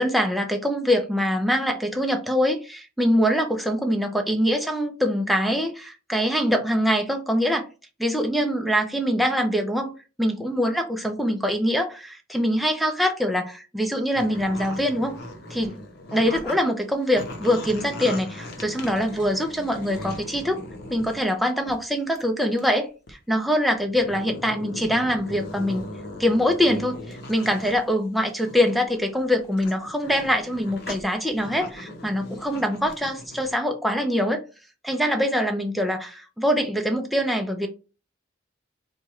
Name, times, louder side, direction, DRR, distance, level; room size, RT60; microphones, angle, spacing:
voice 1, 0.0-7.7 8.0-9.9 10.2-15.2 15.5-15.7 16.1-20.6 20.9-25.9 26.2-34.4 34.8-37.7, equal, ahead, 0.4 m, -24 dB
sound 1, 14.1-16.6 16.9-21.2 21.7-21.9 22.2-22.3 22.6-22.7 23.1-23.2 23.8-27.8 28.2-33.5, left 1 dB, 55° left, 0.9 m, -39 dB
4.5 x 2.3 x 3.0 m
head